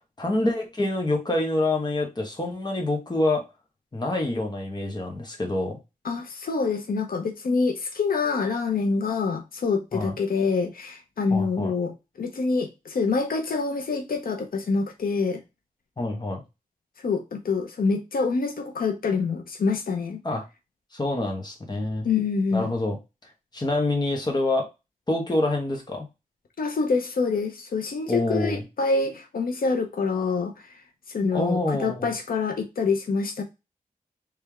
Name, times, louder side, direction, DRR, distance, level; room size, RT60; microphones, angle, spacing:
voice 1, 0.2-3.4 3.9-5.8 9.9-10.2 11.3-11.7 16.0-16.4 20.2-20.4 20.9-22.1 22.5-23.0 23.5-24.7 25.1-26.1 28.1-28.6 31.3-32.1, left 2 dB, 30° left, 1.3 m, -26 dB
voice 2, 6.0-15.4 17.0-20.2 22.0-22.7 26.6-30.7 31.1-33.4, left 4 dB, 85° left, 0.7 m, -26 dB
3.4 x 3.3 x 3.4 m
wide cardioid pair, 130°, 15 cm